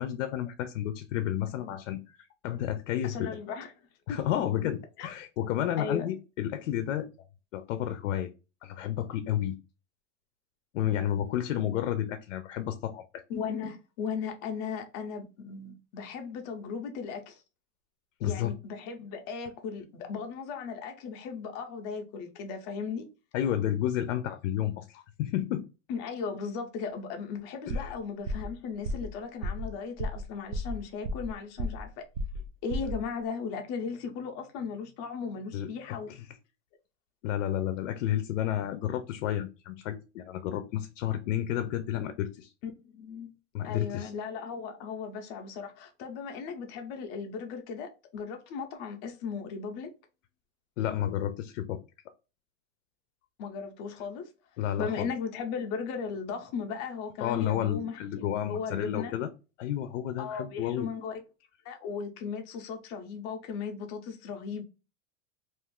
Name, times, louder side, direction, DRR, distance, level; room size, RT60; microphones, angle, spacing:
voice 1, 0.0-3.4 4.1-7.1 7.5-8.3 8.6-9.6 10.7-13.2 18.2-18.5 23.3-25.6 27.7-27.8 35.5-36.3 37.2-42.5 43.5-44.1 50.8-51.8 54.6-55.1 57.2-59.3 59.6-60.9, left 11 dB, 85° left, 0.5 m, -31 dB
voice 2, 3.0-3.7 4.1-4.2 5.0-5.1 5.8-6.1 13.3-17.4 18.2-23.1 25.9-32.0 32.6-36.1 42.9-43.3 43.6-49.9 53.4-54.3 54.8-59.2 60.2-61.2 61.6-64.6, left 5 dB, 30° left, 0.5 m, -37 dB
sound 1, 27.7-28.0 28.3-28.5 28.9-29.1 29.4-29.7 30.0-30.3 30.5-31.3 31.6-31.9 32.2-32.5 32.7-33.0, equal, 40° right, 0.5 m, -33 dB
2.5 x 2.4 x 3.5 m
supercardioid pair, 165°, 36 cm